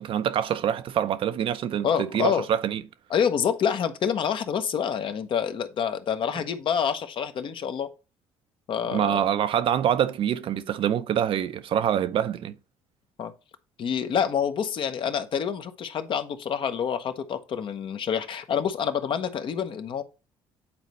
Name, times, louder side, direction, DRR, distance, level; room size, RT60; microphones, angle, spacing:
voice 1, 0.0-2.8 8.9-12.5, right 9 dB, 55° right, 0.5 m, -25 dB
voice 2, 1.8-2.4 3.1-7.9 8.7-9.2 13.2-13.3 13.8-20.0, left 8 dB, 50° left, 0.9 m, -27 dB
8.7 x 4.1 x 3.0 m
supercardioid pair, 80°, 11 cm